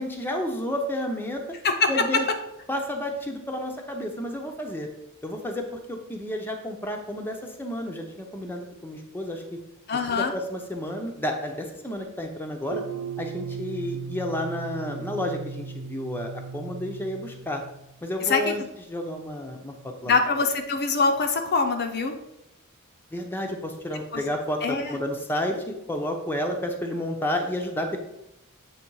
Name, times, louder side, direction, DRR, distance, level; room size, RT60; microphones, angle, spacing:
voice 1, 0.0-1.4 1.9-2.3 2.7-4.9 5.2-9.6 10.1-12.8 13.2-17.6 18.0-18.6 18.9-20.2 23.1-28.0, left 1 dB, 10° left, 2 dB, 0.6 m, -31 dB
voice 2, 9.9-10.3 18.2-18.5 20.1-22.1 24.1-24.2 24.6-25.0, left 4 dB, 50° left, 5 dB, 0.6 m, -24 dB
sound 1, 12.7-17.9, right 5 dB, 75° right, 0.6 m, -37 dB
7.6 x 3.1 x 4.6 m, 0.84 s
head